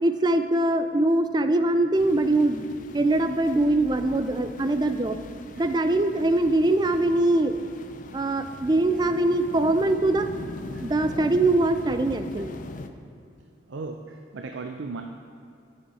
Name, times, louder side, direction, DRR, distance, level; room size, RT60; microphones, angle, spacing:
voice 1, 0.0-2.7 2.9-5.2 5.6-7.5 8.1-10.3 10.8-12.5, right 2 dB, 20° right, 9 dB, 0.4 m, -22 dB
sound 1, 1.9-12.9, left 2 dB, 45° left, 0.5 m, -41 dB
voice 2, 13.7-15.0, right 3 dB, 80° right, 5 dB, 0.5 m, -36 dB
12.0 x 7.0 x 4.2 m, 2.5 s
head